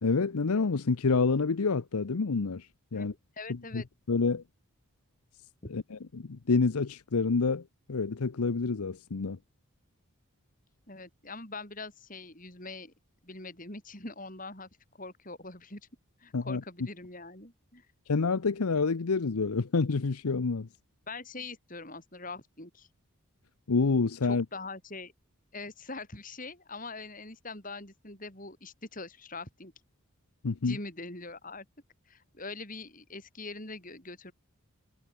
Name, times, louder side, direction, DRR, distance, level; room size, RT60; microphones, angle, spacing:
voice 1, 0.0-2.7 2.9-3.1 3.5-4.4 5.7-7.6 7.9-9.4 16.3-16.6 18.1-20.7 23.7-24.4 30.4-30.8, left 4 dB, 85° left, 0.7 m, -28 dB
voice 2, 3.4-3.9 5.6-5.7 10.9-12.9 13.2-14.7 15.0-15.8 16.2-17.9 21.1-22.9 24.2-25.1 25.5-29.7 30.6-31.7 32.1-34.3, left 3 dB, 35° left, 7.0 m, -43 dB
head